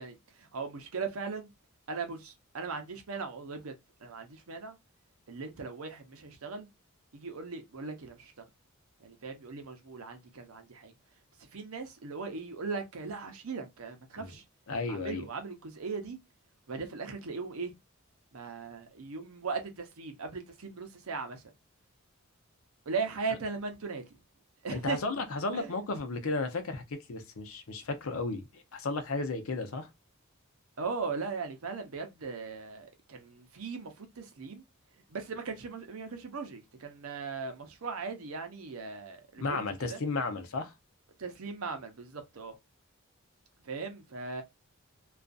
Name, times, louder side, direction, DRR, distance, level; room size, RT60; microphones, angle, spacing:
voice 1, 0.0-1.5 1.9-3.7 4.0-4.8 5.3-6.7 7.1-8.5 9.0-10.9 11.4-14.4 14.9-16.2 16.7-17.7 18.3-21.5 22.9-24.0 24.6-25.0 25.5-25.8 30.8-34.6 35.1-40.0 41.2-42.6 43.6-44.4, right 4 dB, 80° right, 0.7 m, -38 dB
voice 2, 14.7-15.2 24.7-29.9 39.4-40.7, left 3 dB, 70° left, 0.6 m, -34 dB
2.5 x 2.4 x 2.3 m
head